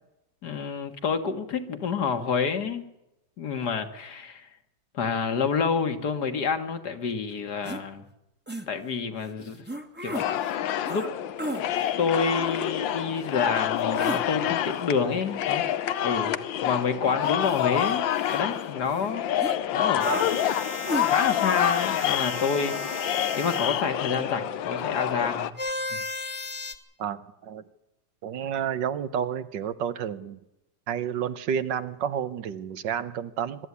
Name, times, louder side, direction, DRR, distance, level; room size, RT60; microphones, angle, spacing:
voice 1, 0.4-2.9 3.4-4.5 4.9-8.1 8.7-9.6 10.0-10.4 10.9-11.1 12.0-15.6 16.0-18.1 18.3-19.2 19.7-20.3 21.1-25.5 25.9-26.0, left 5 dB, 60° left, 8 dB, 2.1 m, -28 dB
sound 1, 7.6-7.8 8.5-8.7 9.7-10.2 10.8-11.1 11.4-11.6 13.8-14.2 17.2-18.6 18.9-19.0 19.4-19.6 20.0-20.3 20.8-21.1, right 1 dB, 5° right, 1.3 m, -33 dB
sound 2, 10.1-25.5, left 11 dB, 85° left, 1.6 m, -28 dB
sound 3, 20.0-23.8 25.6-26.7, left 3 dB, 20° left, 1.1 m, -34 dB
voice 2, 27.0-27.6 28.2-30.4 30.9-33.7, right 8 dB, 75° right, 14 dB, 1.6 m, -30 dB
22.5 x 13.0 x 9.7 m, 0.92 s
omnidirectional pair, 2.0 m